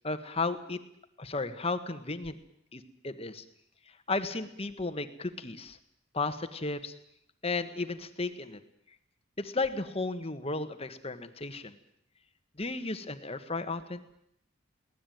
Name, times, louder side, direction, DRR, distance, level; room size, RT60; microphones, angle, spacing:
voice 1, 0.0-0.8 1.2-2.4 2.7-3.4 4.1-5.8 6.1-6.9 7.4-8.6 9.4-11.8 12.6-14.1, left 3 dB, 30° left, 9 dB, 1.5 m, -34 dB
23.5 x 18.0 x 9.3 m, 0.73 s
head